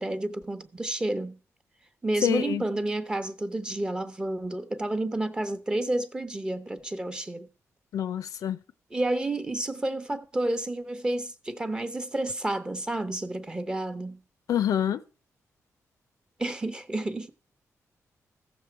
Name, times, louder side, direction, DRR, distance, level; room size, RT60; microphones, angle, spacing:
voice 1, 0.0-1.4 2.0-7.5 8.9-14.2 16.4-17.3, right 1 dB, 15° right, 0.7 m, -30 dB
voice 2, 2.2-2.6 7.9-8.6 14.5-15.0, left 10 dB, 85° left, 0.6 m, -26 dB
15.0 x 7.0 x 4.5 m
wide cardioid pair, 170°, 6 cm